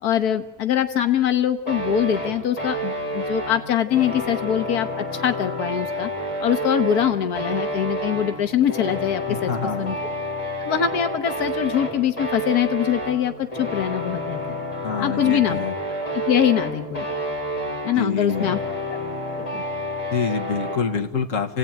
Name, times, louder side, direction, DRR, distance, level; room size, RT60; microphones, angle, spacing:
voice 1, 0.0-6.1 6.4-9.5 9.8-10.0 10.6-14.6 15.0-15.6 16.3-17.1 17.8-18.6 18.9-19.0 19.4-19.6, left 10 dB, 85° left, 8 dB, 1.6 m, -23 dB
sound 1, 1.7-20.8, equal, 25° left, 7.1 m, -29 dB
voice 2, 9.3-9.9 14.8-15.7 18.0-18.6 20.1-21.6, left 5 dB, 60° left, 3 dB, 2.0 m, -26 dB
29.0 x 17.0 x 9.1 m, 1.1 s
omnidirectional pair, 1.6 m